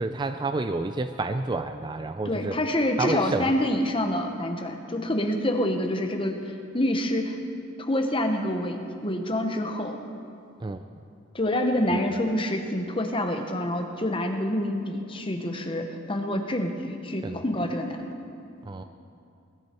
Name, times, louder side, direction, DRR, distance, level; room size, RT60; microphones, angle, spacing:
voice 1, 0.0-2.6 3.0-3.5 10.6-10.8 12.0-12.1 17.2-17.4 18.7-18.8, right 2 dB, 20° right, 8 dB, 0.3 m, -29 dB
voice 2, 2.2-7.4 7.8-10.0 11.3-18.1, left 1 dB, 25° left, 4 dB, 1.0 m, -27 dB
21.0 x 11.5 x 4.5 m, 2.5 s
head